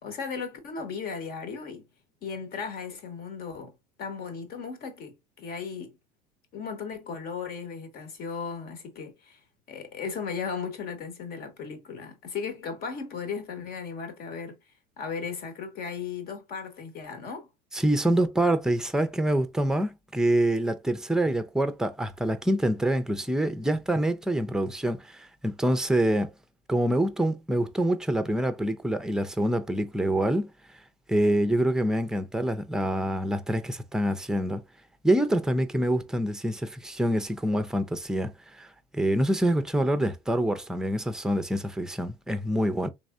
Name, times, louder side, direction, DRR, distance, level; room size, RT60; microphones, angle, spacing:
voice 1, 0.0-1.8 2.2-3.7 4.0-6.0 6.5-9.4 9.7-14.6 15.0-17.5, left 5 dB, 55° left, 1.3 m, -36 dB
voice 2, 17.7-26.3 26.7-30.5 31.1-34.6 35.0-38.7 38.9-42.9, right 1 dB, 5° right, 0.5 m, -26 dB
3.5 x 3.2 x 2.5 m
supercardioid pair, 100°, 19 cm